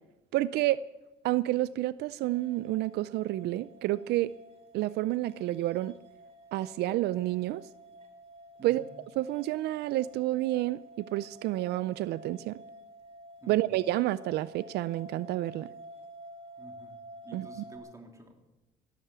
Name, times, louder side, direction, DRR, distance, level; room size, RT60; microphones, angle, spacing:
voice 1, 0.3-0.8 1.2-4.3 4.7-5.9 6.5-7.6 8.6-8.8 9.2-12.6 13.5-15.7 17.3-17.5, right 16 dB, 75° right, 17 dB, 0.4 m, -29 dB
sound 1, 2.2-17.8, right 1 dB, 35° right, 3.4 m, -51 dB
voice 2, 16.6-17.0 17.2-18.4, right 2 dB, 20° right, 3 dB, 3.1 m, -50 dB
16.0 x 13.0 x 6.9 m, 1.0 s
cardioid pair, 110°, 17 cm